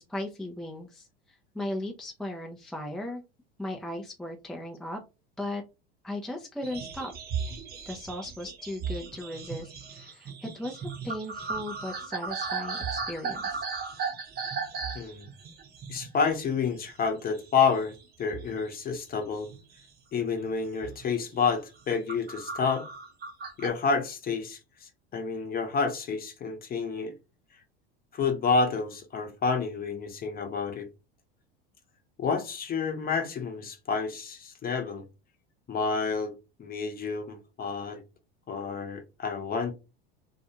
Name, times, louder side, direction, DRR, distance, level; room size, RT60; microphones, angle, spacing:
voice 1, 0.0-3.2 3.6-5.0 5.4-5.6 6.0-7.1 7.9-13.6, left 1 dB, ahead, 0.4 m, -37 dB
sound 1, 6.6-17.1 17.3-18.0 18.3-19.8 20.3-20.5 20.8-21.1 21.6-23.7, right 5 dB, 30° right, 0.8 m, -36 dB
voice 2, 15.9-19.5 20.1-22.9 23.6-27.1 28.1-30.9 32.2-35.0 35.7-36.3 36.6-38.0 38.5-39.7, left 5 dB, 30° left, 0.8 m, -29 dB
2.4 x 2.2 x 2.8 m
hypercardioid pair, 85°, 30 cm